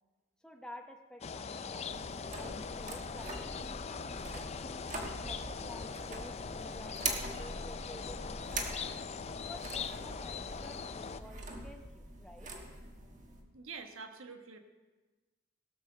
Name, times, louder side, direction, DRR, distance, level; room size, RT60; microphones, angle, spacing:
voice 1, 0.4-1.9 2.3-4.8 5.3-7.1 7.4-9.0 9.4-12.5, equal, 5° left, 3 dB, 0.7 m, -52 dB
sound 1, 1.2-11.2, left 5 dB, 30° left, 0.4 m, -41 dB
sound 2, 1.9-13.4, right 3 dB, 35° right, 1.4 m, -43 dB
sound 3, 6.4-11.7, right 1 dB, 60° right, 1.0 m, -52 dB
voice 2, 13.5-14.6, right 5 dB, 80° right, 5 dB, 1.3 m, -46 dB
17.0 x 6.7 x 6.5 m, 1.2 s
head